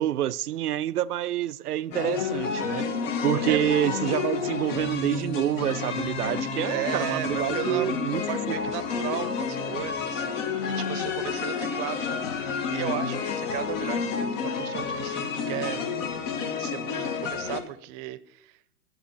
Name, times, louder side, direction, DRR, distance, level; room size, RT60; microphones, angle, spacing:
voice 1, 0.0-2.9 3.2-8.6, right 12 dB, 85° right, 0.6 m, -27 dB
sound 1, 1.9-17.6, left 5 dB, 55° left, 1.7 m, -30 dB
voice 2, 6.7-7.9 8.2-15.9 16.6-18.6, right 17 dB, 35° right, 0.8 m, -35 dB
12.0 x 7.4 x 5.7 m
hypercardioid pair, 120°, 45 cm